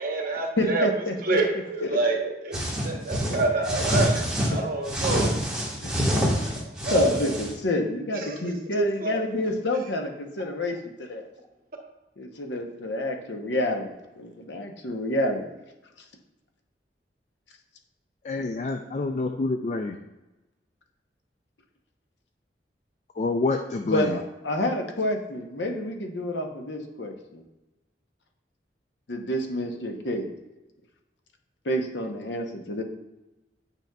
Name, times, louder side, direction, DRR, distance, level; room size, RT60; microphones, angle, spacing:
voice 1, 0.0-0.9 1.2-5.4 6.5-7.3 8.1-8.4 8.7-9.2, right 2 dB, 55° right, 2 dB, 1.0 m, -27 dB
voice 2, 0.6-1.1 1.8-2.0 5.8-6.0 6.4-6.5 6.9-11.3 12.2-15.5 23.9-27.4 29.1-30.3 31.6-32.8, left 1 dB, 90° left, 3 dB, 0.9 m, -29 dB
sound 1, 2.5-4.5 4.9-7.5, equal, 5° right, 1.3 m, -26 dB
voice 3, 18.2-20.0 23.2-24.2, left 3 dB, 40° left, 5 dB, 0.3 m, -27 dB
9.1 x 5.3 x 2.3 m, 1.0 s
head